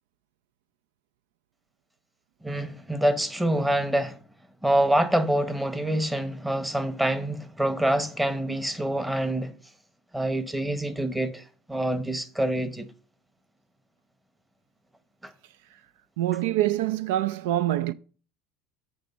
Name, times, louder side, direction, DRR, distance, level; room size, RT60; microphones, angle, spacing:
voice 1, 2.4-4.2 4.6-9.5 10.1-12.9 15.2-15.3, right 1 dB, 5° right, 1.1 m, -26 dB
voice 2, 16.2-17.9, right 14 dB, 75° right, 0.4 m, -25 dB
7.9 x 5.2 x 5.5 m
hypercardioid pair, 90°, 0 cm